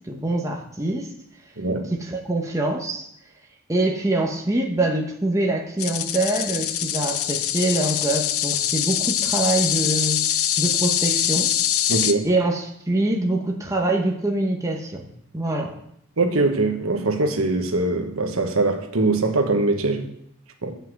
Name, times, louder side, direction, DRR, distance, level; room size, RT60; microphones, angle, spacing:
voice 1, 0.1-1.1 2.0-3.1 3.7-11.5 12.2-15.1 15.3-15.7, right 2 dB, 15° right, 0 dB, 1.1 m, -24 dB
voice 2, 1.6-1.9 11.9-12.3 16.2-20.1 20.6-20.7, right 2 dB, 85° right, 5 dB, 1.2 m, -22 dB
sound 1, 5.8-12.1, left 11 dB, 90° left, 0.6 m, -23 dB
7.6 x 5.6 x 7.6 m, 0.73 s
head